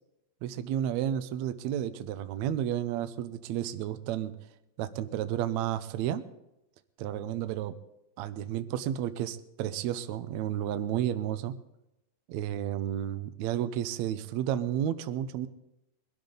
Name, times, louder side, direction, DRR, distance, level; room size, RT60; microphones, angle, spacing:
voice 1, 0.4-4.4 4.8-6.3 7.0-7.8 8.2-11.6 12.3-15.5, right 11 dB, 85° right, 11 dB, 1.6 m, -32 dB
21.0 x 12.5 x 3.9 m, 0.88 s
omnidirectional pair, 4.1 m